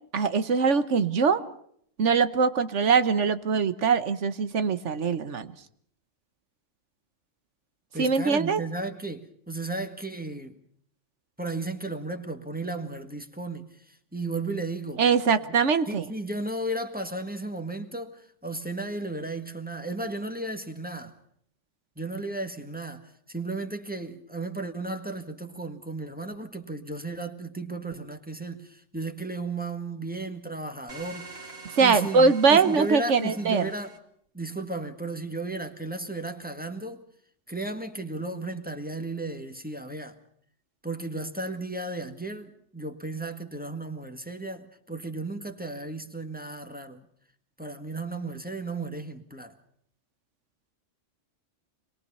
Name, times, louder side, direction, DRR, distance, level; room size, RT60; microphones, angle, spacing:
voice 1, 0.1-1.4 2.0-5.5 8.0-8.6 15.0-16.1 31.8-33.7, right 5 dB, 70° right, 1.4 m, -22 dB
voice 2, 7.9-10.6 11.4-15.0 15.5-15.6 15.9-21.2 22.0-31.4 31.8-33.9 34.3-37.0 37.5-40.2 40.8-47.1 47.6-49.6, right 2 dB, 5° right, 1.7 m, -34 dB
sound 1, 30.9-34.0, right 3 dB, 55° right, 2.7 m, -46 dB
26.0 x 22.0 x 5.6 m
omnidirectional pair, 1.3 m